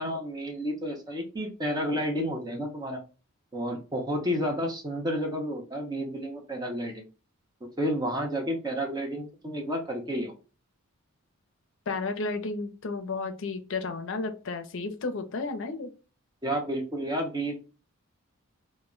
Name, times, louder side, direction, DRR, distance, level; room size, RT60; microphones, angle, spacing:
voice 1, 0.0-3.0 3.5-7.0 7.8-10.3 16.4-17.6, equal, 20° right, 2 dB, 0.5 m, -31 dB
voice 2, 11.9-15.9, left 3 dB, 60° left, 7 dB, 0.5 m, -32 dB
2.1 x 2.1 x 3.6 m, 0.33 s
head